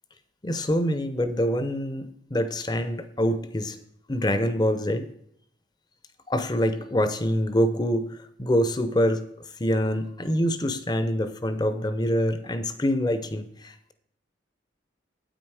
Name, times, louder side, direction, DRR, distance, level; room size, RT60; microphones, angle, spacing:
voice 1, 0.4-3.8 4.1-5.1 6.3-9.2 9.6-13.9, equal, 20° left, 10 dB, 0.7 m, -25 dB
9.0 x 8.7 x 4.8 m, 0.71 s
head